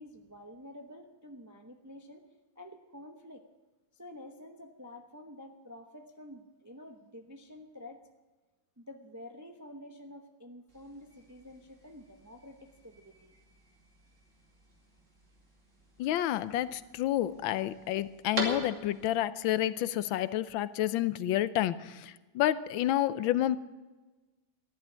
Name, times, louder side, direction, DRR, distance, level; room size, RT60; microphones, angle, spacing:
voice 1, 0.0-2.2 2.5-3.4 3.9-8.0 8.8-13.3, left 1 dB, 20° right, 4 dB, 0.4 m, -49 dB
sound 1, 10.7-19.2, equal, 40° right, 2.8 m, -44 dB
voice 2, 16.0-23.6, left 13 dB, 90° left, 15 dB, 1.4 m, -29 dB
14.0 x 11.5 x 7.3 m, 1.2 s
omnidirectional pair, 2.1 m